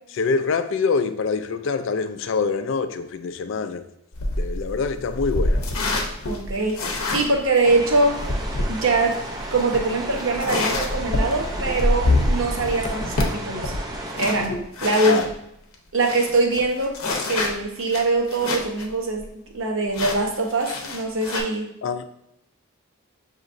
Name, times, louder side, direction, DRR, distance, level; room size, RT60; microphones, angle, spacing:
voice 1, 0.2-3.9 4.4-5.6 15.0-15.3 21.8-22.0, left 4 dB, 60° left, 9 dB, 0.3 m, -25 dB
sound 1, 4.1-15.3 15.7-15.8 16.0-18.9 19.2-19.3 19.9-21.4, left 2 dB, 80° left, 0.7 m, -26 dB
voice 2, 6.3-8.2 8.7-9.2 9.5-13.7 14.2-15.3 15.9-17.0 17.2-19.3 19.5-21.7, right 2 dB, 70° right, 1 dB, 0.8 m, -23 dB
sound 2, 7.6-14.4, right 1 dB, 20° right, 0.4 m, -34 dB
6.3 x 2.9 x 2.5 m, 0.77 s
head